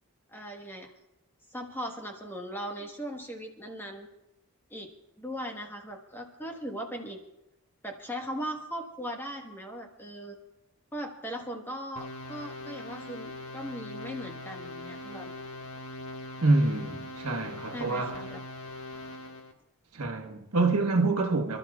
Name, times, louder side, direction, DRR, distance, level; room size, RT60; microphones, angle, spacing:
voice 1, 0.3-0.9 1.5-4.1 4.7-4.9 5.2-7.2 7.8-10.4 10.9-15.3 17.7-18.4, equal, 10° left, 1.3 m, -38 dB
sound 1, 12.0-19.5, left 2 dB, 70° left, 1.8 m, -41 dB
voice 2, 16.4-18.2 19.9-21.6, right 3 dB, 85° right, 1.3 m, -26 dB
28.0 x 12.5 x 2.4 m
head